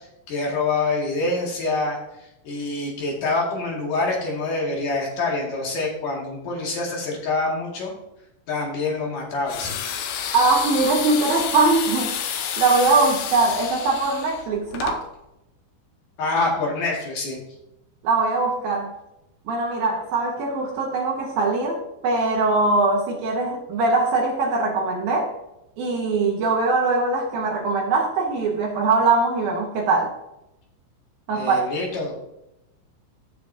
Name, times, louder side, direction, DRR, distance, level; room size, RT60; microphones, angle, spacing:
voice 1, 0.3-2.0 2.4-7.9 8.5-9.8 16.2-17.4 31.3-32.1, left 3 dB, 50° left, -2 dB, 3.1 m, -26 dB
sound 1, 9.5-15.0, left 8 dB, 80° left, 2.7 m, -29 dB
voice 2, 10.3-15.1 18.0-18.9 19.5-25.3 25.8-30.1 31.3-31.6, right 3 dB, 75° right, -1 dB, 2.2 m, -21 dB
14.5 x 6.4 x 2.7 m, 0.87 s
omnidirectional pair, 5.8 m